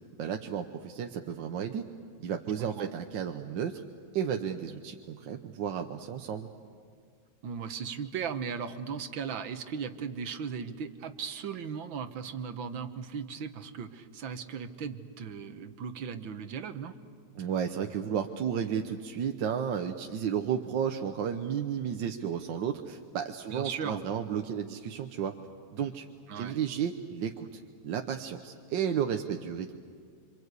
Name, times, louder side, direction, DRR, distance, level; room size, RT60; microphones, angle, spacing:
voice 1, 0.2-1.9 2.2-3.8 4.1-6.5 17.4-25.3 25.7-26.1 26.3-29.8, right 8 dB, 75° right, 5 dB, 1.6 m, -33 dB
voice 2, 2.6-2.9 7.4-16.9 23.5-24.1 26.3-26.6, right 6 dB, 90° right, 9 dB, 1.9 m, -37 dB
27.0 x 26.5 x 8.2 m, 2.1 s
omnidirectional pair, 2.1 m